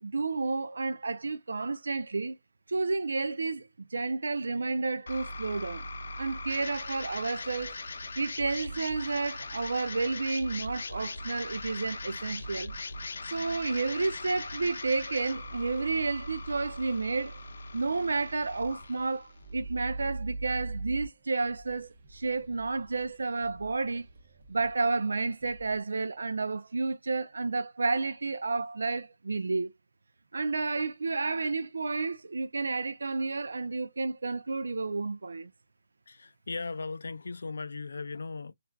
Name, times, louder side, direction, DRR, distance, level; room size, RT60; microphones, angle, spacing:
voice 1, 0.0-2.3 2.7-5.8 6.2-7.7 8.2-12.7 13.3-17.4 17.7-24.0 24.5-29.7 30.3-35.5, right 3 dB, 80° right, 0.4 m, -31 dB
sound 1, 5.1-21.1, left 1 dB, 55° left, 0.7 m, -40 dB
sound 2, 6.7-25.8, right 1 dB, 25° right, 0.5 m, -56 dB
voice 2, 36.1-38.5, left 4 dB, 75° left, 0.4 m, -37 dB
4.4 x 2.4 x 2.3 m
hypercardioid pair, 180°, 0 cm